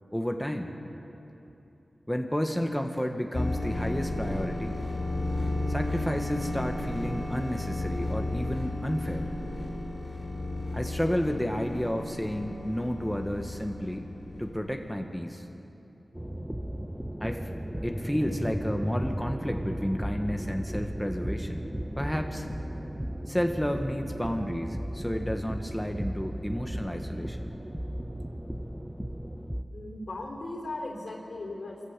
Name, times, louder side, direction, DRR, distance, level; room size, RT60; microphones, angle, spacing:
voice 1, 0.1-0.7 2.1-4.8 5.7-9.3 10.7-14.1 14.4-15.5 17.2-17.5 17.8-21.6 22.0-22.5 23.3-27.5, equal, 5° left, 3 dB, 1.4 m, -31 dB
sound 1, 3.3-15.0, left 2 dB, 45° left, 3.7 m, -33 dB
sound 2, 16.1-29.6, equal, 10° right, 1.0 m, -35 dB
voice 2, 29.7-31.8, left 2 dB, 80° left, 1 dB, 3.8 m, -37 dB
23.5 x 14.0 x 8.2 m, 3.0 s
wide cardioid pair, 55°, 0 cm